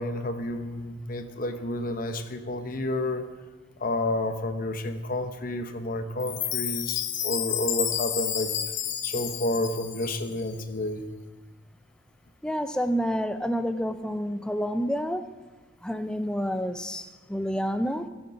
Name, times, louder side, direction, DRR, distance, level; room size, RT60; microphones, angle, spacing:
voice 1, 0.0-3.3 3.8-8.5 9.0-11.0, left 1 dB, 45° left, 8 dB, 0.8 m, -30 dB
Chime, 6.2-10.4, left 10 dB, 65° left, 1.0 m, -31 dB
voice 2, 12.4-15.3 15.8-18.1, equal, 5° left, 9 dB, 0.4 m, -29 dB
17.5 x 6.7 x 5.6 m, 1.3 s
head